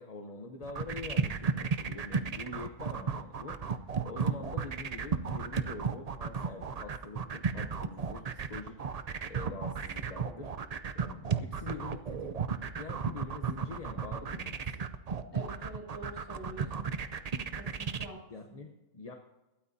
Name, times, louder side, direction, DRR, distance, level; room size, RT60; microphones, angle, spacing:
voice 1, 0.0-8.8 9.3-10.5 10.9-12.3 12.7-14.8 18.3-19.2, left 3 dB, 30° left, 3 dB, 0.9 m, -45 dB
sound 1, 0.6-18.1, right 6 dB, 45° right, 0.5 m, -33 dB
voice 2, 15.3-16.9 17.6-18.2 18.5-18.6, right 1 dB, 15° left, -2 dB, 5.7 m, -46 dB
21.0 x 13.0 x 2.7 m, 1.0 s
omnidirectional pair, 1.4 m